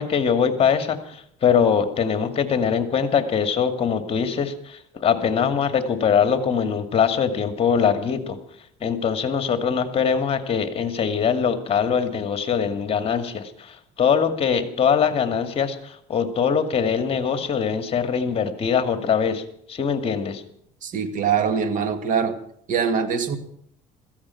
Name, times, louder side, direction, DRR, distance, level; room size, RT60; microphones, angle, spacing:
voice 1, 0.0-8.4 8.8-19.4 19.7-20.4, left 7 dB, 40° left, 8 dB, 2.3 m, -22 dB
voice 2, 20.8-22.4 22.7-23.4, right 6 dB, 55° right, 8 dB, 2.3 m, -23 dB
16.5 x 15.0 x 5.9 m, 0.67 s
cardioid pair, 110°, 16 cm